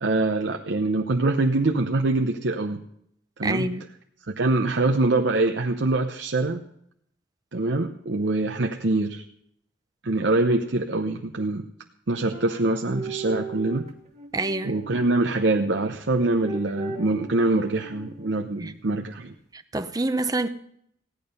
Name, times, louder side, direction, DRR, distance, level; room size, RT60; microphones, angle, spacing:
voice 1, 0.0-2.8 3.4-3.7 4.3-6.6 7.5-9.2 10.0-11.6 12.1-13.9 14.6-19.3, right 2 dB, 70° right, 0.8 m, -24 dB
voice 2, 3.4-3.8 14.3-14.8 18.6-18.7 19.5-20.5, right 2 dB, 20° right, 0.7 m, -27 dB
sound 1, 12.3-15.4 16.2-18.4, right 3 dB, 40° right, 2.1 m, -37 dB
16.0 x 10.5 x 5.4 m
head